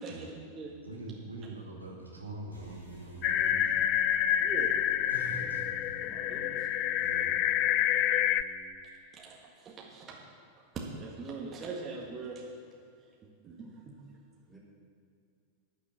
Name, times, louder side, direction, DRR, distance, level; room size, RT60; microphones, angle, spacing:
voice 1, 0.0-0.7 4.4-4.8 9.2-10.2 10.7-12.4 13.2-14.0, right 4 dB, 25° right, -2 dB, 1.7 m, -41 dB
voice 2, 0.8-3.8 5.1-5.9 7.0-7.3, right 2 dB, 80° right, -2 dB, 2.3 m, -43 dB
sound 1, 2.5-8.7, right 1 dB, 75° left, 3.7 m, -53 dB
sound 2, 3.2-8.4, left 11 dB, 40° left, 0.4 m, -28 dB
voice 3, 6.0-6.7 14.4-14.6, equal, 5° left, -7 dB, 3.7 m, -50 dB
11.5 x 6.7 x 8.4 m, 2.4 s
figure-of-eight pair, 90°, 0 cm